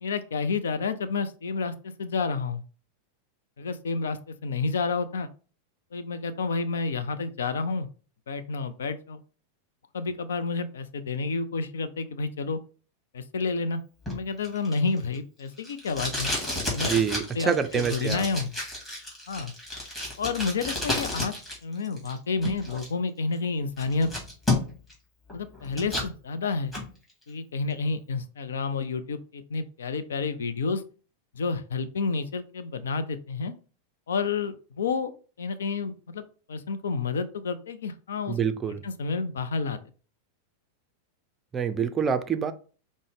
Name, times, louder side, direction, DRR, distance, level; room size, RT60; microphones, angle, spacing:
voice 1, 0.0-2.6 3.6-5.3 5.9-7.9 8.3-9.2 9.9-12.6 13.1-13.8 14.1-16.3 16.7-17.0 17.3-18.5 19.3-19.5 20.2-21.3 21.6-24.1 25.3-26.7 27.3-30.8 31.3-33.5 34.1-35.1 35.4-36.2 36.5-38.4 38.8-39.8, left 4 dB, 65° left, 0.4 m, -30 dB
Packing tape duct tape, 14.1-21.6 21.8-22.9 23.3-23.4 23.8-24.9 25.3-26.1 26.5-26.9, left 2 dB, 15° left, 1.8 m, -31 dB
voice 2, 16.9-18.3 38.3-38.8 41.5-42.5, right 7 dB, 20° right, 0.4 m, -26 dB
5.1 x 2.1 x 3.4 m
figure-of-eight pair, 90°, 0 cm